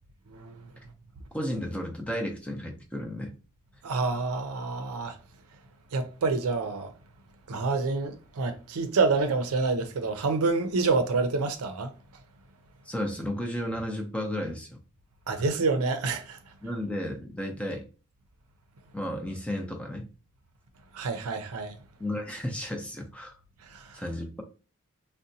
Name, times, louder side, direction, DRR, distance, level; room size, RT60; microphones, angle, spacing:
voice 1, 1.3-3.3 12.9-14.8 15.3-15.5 16.6-17.9 18.9-20.1 22.0-23.4 23.9-24.4, left 1 dB, 5° left, 0.4 m, -33 dB
voice 2, 3.8-5.2 5.9-6.9 7.5-11.9 15.3-16.4 20.9-21.8 23.7-24.0, right 4 dB, 85° right, 0.5 m, -27 dB
3.8 x 2.1 x 2.6 m
head